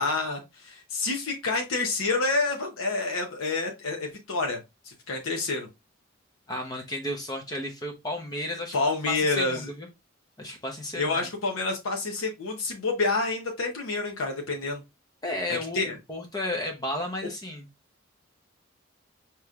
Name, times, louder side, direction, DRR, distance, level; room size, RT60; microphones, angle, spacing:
voice 1, 0.0-4.6 4.8-5.7 8.7-9.7 11.0-14.8 15.7-16.0, left 3 dB, 80° left, 0.8 m, -28 dB
voice 2, 6.5-8.8 9.1-9.9 10.4-11.2 15.2-17.7, left 1 dB, 20° left, 0.7 m, -33 dB
5.0 x 2.9 x 2.3 m
head